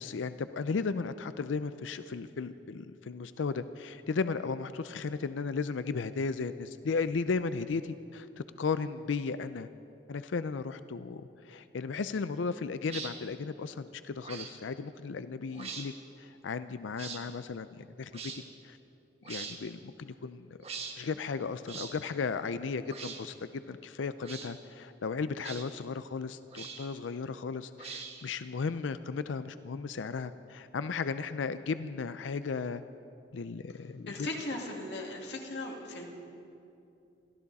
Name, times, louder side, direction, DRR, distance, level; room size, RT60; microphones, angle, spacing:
voice 1, 0.0-8.3 8.6-9.7 10.1-18.8 19.3-20.5 21.0-32.8 33.3-34.1, left 4 dB, 90° left, 12 dB, 0.5 m, -35 dB
sound 1, 12.8-13.1 14.2-14.5 15.5-15.9 17.0-17.2 18.1-18.4 19.2-19.6 20.6-21.0 21.7-21.9 22.9-23.2 24.2-24.5 25.4-25.7 26.5-27.0 27.8-28.3, right 5 dB, 35° right, 1.4 m, -42 dB
voice 2, 34.1-36.0, left 2 dB, 65° left, 0 dB, 2.4 m, -38 dB
22.5 x 15.5 x 4.1 m, 2.6 s
head